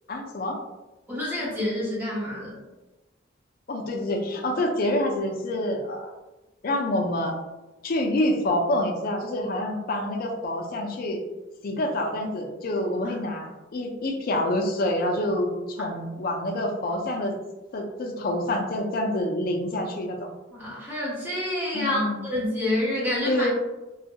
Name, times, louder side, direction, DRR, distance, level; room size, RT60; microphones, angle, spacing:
voice 1, 0.1-0.6 3.7-6.1 6.6-7.4 7.8-11.2 11.6-17.4 17.7-20.3 21.7-22.2 23.3-23.5, left 1 dB, 50° left, 2 dB, 0.4 m, -27 dB
voice 2, 1.1-2.6 20.5-23.5, left 1 dB, 10° right, -8 dB, 0.9 m, -28 dB
2.3 x 2.2 x 2.7 m, 1.1 s
head